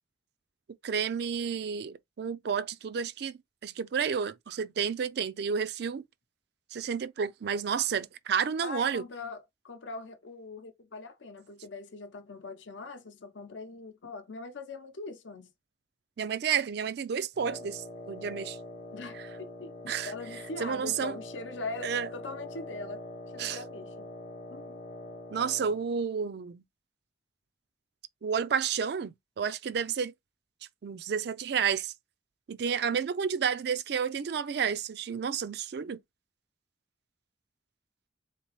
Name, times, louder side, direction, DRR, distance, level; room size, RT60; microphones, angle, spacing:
voice 1, 0.8-3.3 3.6-6.0 6.7-9.0 16.2-18.6 19.9-20.1 20.6-21.1 21.8-22.1 23.4-23.6 25.3-26.6 28.2-30.1 30.8-31.9 32.5-36.0, right 7 dB, 60° right, 0.4 m, -31 dB
voice 2, 8.6-15.5 18.9-23.0 23.3-24.1 24.5-24.8, left 3 dB, 85° left, 0.7 m, -42 dB
Wind instrument woodwind instrument, 17.3-25.9, left 1 dB, 50° left, 0.8 m, -44 dB
3.9 x 2.9 x 2.9 m
head